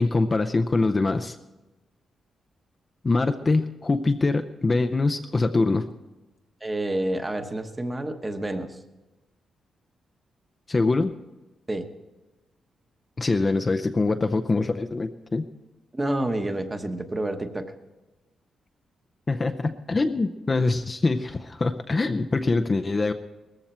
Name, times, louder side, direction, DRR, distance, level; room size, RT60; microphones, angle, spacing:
voice 1, 0.0-1.4 3.0-5.9 10.7-11.2 13.2-15.5 19.3-23.1, left 3 dB, 25° left, 7 dB, 0.5 m, -24 dB
voice 2, 6.6-8.8 11.7-11.9 15.9-17.7, right 1 dB, 15° right, 7 dB, 1.0 m, -28 dB
19.0 x 14.5 x 4.4 m, 1.1 s
wide cardioid pair, 160°, 0 cm